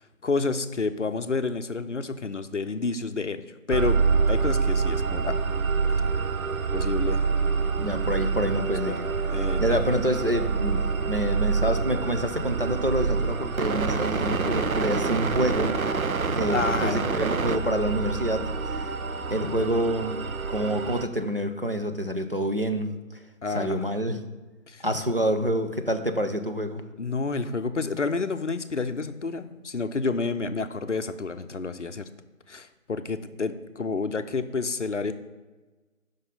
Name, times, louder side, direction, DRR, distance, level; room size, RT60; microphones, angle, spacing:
voice 1, 0.0-3.4 3.7-4.0 4.3-5.3 6.7-7.3 8.9-9.0 9.3-9.8 16.5-17.2 23.4-23.8 24.7-24.8 27.0-32.1 32.5-35.1, left 4 dB, 60° left, 10 dB, 0.5 m, -29 dB
sound 1, 3.7-21.1, right 5 dB, 90° right, 0.6 m, -26 dB
voice 2, 7.8-9.1 9.6-15.9 16.3-18.9 19.3-20.2 20.5-22.9 23.5-24.2 24.8-26.8, equal, 45° right, 5 dB, 0.5 m, -27 dB
5.3 x 4.0 x 5.2 m, 1.2 s
figure-of-eight pair, 170°, 41 cm